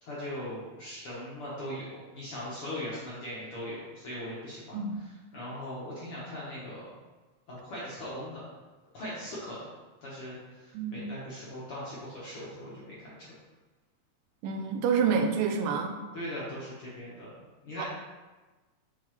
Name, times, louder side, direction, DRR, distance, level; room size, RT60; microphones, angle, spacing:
voice 1, 0.0-4.8 5.3-6.9 7.5-8.4 8.9-9.7 10.0-13.3 16.1-17.3 17.6-17.8, left 1 dB, 55° left, -8 dB, 1.6 m, -39 dB
voice 2, 10.7-11.1 14.4-16.0 17.8-17.9, right 6 dB, 85° right, 5 dB, 2.3 m, -28 dB
7.0 x 4.7 x 3.2 m, 1.2 s
omnidirectional pair, 4.0 m